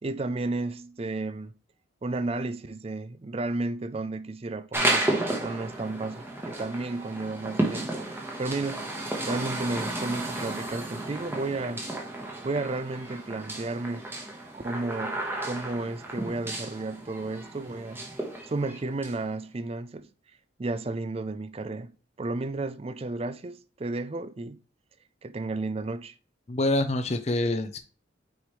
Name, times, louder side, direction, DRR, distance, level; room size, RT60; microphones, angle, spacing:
voice 1, 0.0-1.5 2.0-8.9 9.3-11.8 12.4-14.2 14.5-18.0 18.4-20.1 20.6-21.9 22.2-24.6 25.2-26.1, right 2 dB, 30° right, 0.4 m, -33 dB
sound 1, 4.7-19.1, right 1 dB, 10° right, 1.1 m, -33 dB
voice 2, 26.5-27.8, left 1 dB, 35° left, 0.6 m, -26 dB
6.2 x 5.0 x 3.1 m
head